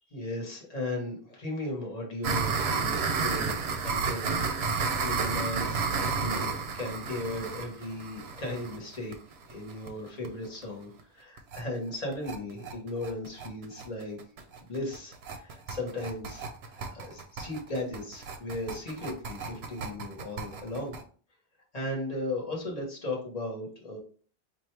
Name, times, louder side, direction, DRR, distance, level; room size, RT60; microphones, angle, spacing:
voice 1, 0.1-4.4 4.7-9.1 9.5-14.2 14.6-21.0 21.7-24.0, left 1 dB, 40° left, -1 dB, 1.2 m, -36 dB
sound 1, 2.2-9.9 10.2-10.3 10.6-10.7 11.0-11.1 11.4-11.6 11.9-21.0, right 5 dB, 90° right, 0.9 m, -32 dB
4.4 x 2.6 x 3.2 m, 0.42 s
omnidirectional pair, 1.0 m